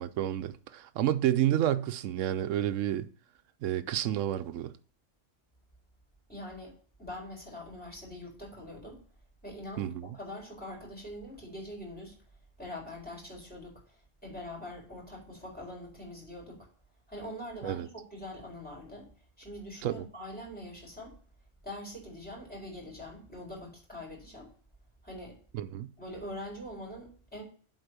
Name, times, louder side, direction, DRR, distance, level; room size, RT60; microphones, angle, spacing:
voice 1, 0.0-3.1 3.6-4.7 9.8-10.1 17.6-17.9 19.8-20.0 25.5-25.9, right 12 dB, 85° right, 0.9 m, -30 dB
voice 2, 6.3-9.0 9.4-12.2 12.6-16.7 17.1-19.1 19.4-21.1 21.6-24.5 25.0-25.4 26.0-27.4, left 1 dB, 5° left, 4.4 m, -43 dB
8.0 x 4.2 x 6.6 m
omnidirectional pair, 1.3 m